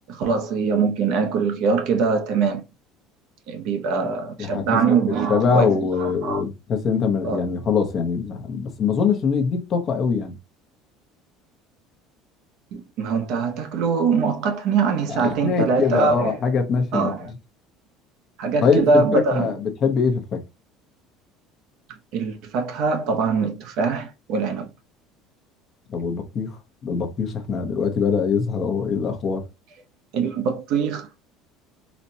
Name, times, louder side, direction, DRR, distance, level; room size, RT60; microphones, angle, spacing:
voice 1, 0.1-2.6 3.5-6.4 7.2-7.5 12.7-16.4 16.9-17.3 18.4-19.5 22.1-24.7 30.1-31.1, right 5 dB, 55° right, 0.6 m, -23 dB
voice 2, 4.4-5.0 5.3-10.3 15.1-17.3 18.6-20.4 25.9-26.6 26.8-29.4, left 5 dB, 30° left, 0.7 m, -23 dB
4.1 x 2.1 x 2.7 m
cardioid pair, 165°, 0 cm